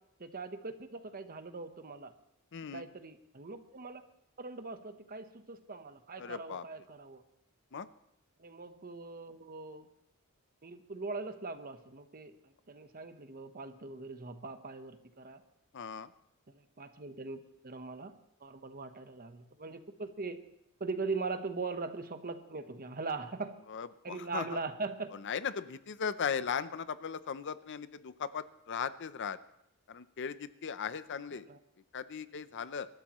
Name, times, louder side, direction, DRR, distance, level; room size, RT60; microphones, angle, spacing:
voice 1, 0.2-2.1 2.7-4.0 4.4-7.2 8.4-9.9 10.6-15.4 16.5-20.4 20.8-23.6 24.0-25.1 31.3-31.6, right 3 dB, 40° right, 9 dB, 1.0 m, -41 dB
voice 2, 2.5-2.9 6.2-6.6 7.7-7.9 15.7-16.1 23.7-24.6 25.1-29.4 29.9-31.5 31.9-32.9, left 6 dB, 55° left, 14 dB, 0.6 m, -38 dB
25.5 x 13.0 x 3.0 m, 0.76 s
head